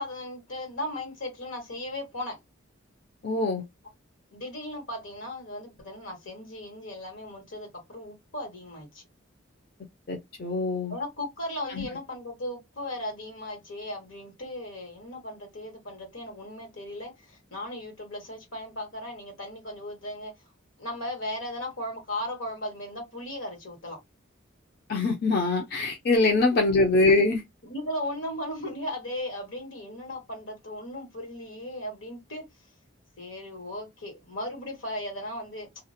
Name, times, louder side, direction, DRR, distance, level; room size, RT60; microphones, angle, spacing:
voice 1, 0.0-2.4 4.3-9.0 10.9-20.3 20.8-24.0 27.6-32.4 33.2-35.7, left 1 dB, 85° left, 1.3 m, -37 dB
voice 2, 3.2-3.6 10.1-10.9 11.8-11.9 24.9-27.4, left 2 dB, 50° left, 0.5 m, -23 dB
2.4 x 2.0 x 2.6 m
head